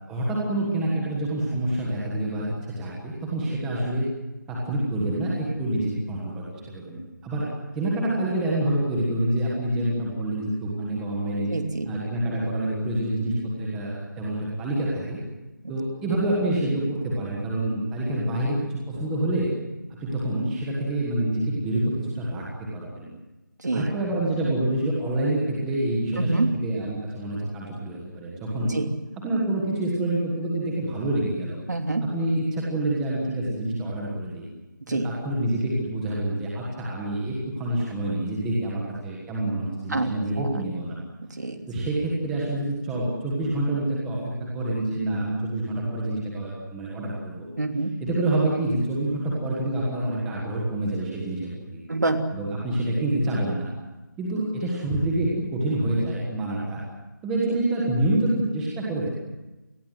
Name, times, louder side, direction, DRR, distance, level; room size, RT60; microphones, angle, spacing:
voice 1, 0.1-4.0 4.5-7.5 7.7-11.5 11.9-15.2 15.7-19.5 19.9-23.1 23.7-28.7 29.2-31.6 32.0-34.5 34.9-41.0 41.7-44.2 44.5-47.5 48.0-51.8 52.3-53.7 54.2-56.8 57.2-59.1, right 1 dB, 5° right, -4 dB, 1.4 m, -27 dB
voice 2, 11.5-11.9 23.6-23.9 26.2-26.5 28.7-28.9 31.7-32.1 34.9-35.1 39.9-40.6 41.2-41.6 47.6-48.0 51.9-52.3, right 2 dB, 60° right, 6 dB, 3.1 m, -26 dB
28.0 x 20.5 x 7.7 m, 1.1 s
figure-of-eight pair, 180°, 11 cm